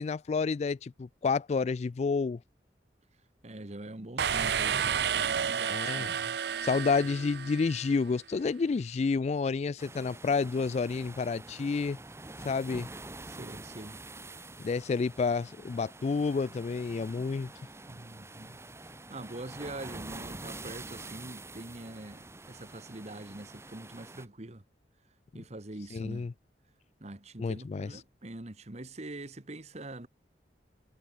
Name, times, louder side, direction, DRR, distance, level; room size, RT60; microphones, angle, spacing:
voice 1, 0.0-2.4 5.7-6.2 6.6-12.0 12.4-12.9 14.6-17.5 25.9-26.3 27.4-27.9, left 4 dB, 40° left, 0.3 m, -30 dB
voice 2, 3.4-6.2 13.2-14.0 17.9-18.6 19.1-24.6 25.3-26.3 27.0-30.1, right 2 dB, 40° right, 1.4 m, -44 dB
sound 1, 4.2-7.9, right 7 dB, 65° right, 0.6 m, -31 dB
sound 2, 9.8-24.3, right 2 dB, 15° right, 1.6 m, -46 dB
head